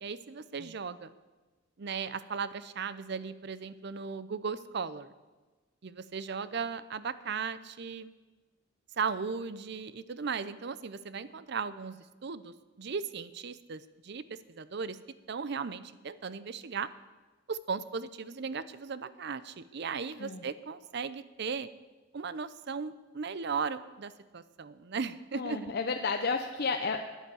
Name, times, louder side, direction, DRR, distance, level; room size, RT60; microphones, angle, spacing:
voice 1, 0.0-1.1 1.8-5.1 5.8-8.1 9.0-15.0 15.3-16.9 17.5-21.7 22.1-25.7, right 5 dB, 60° right, 15 dB, 0.6 m, -37 dB
voice 2, 25.3-27.1, left 4 dB, 55° left, 4 dB, 0.7 m, -32 dB
10.0 x 10.0 x 7.8 m, 1.3 s
head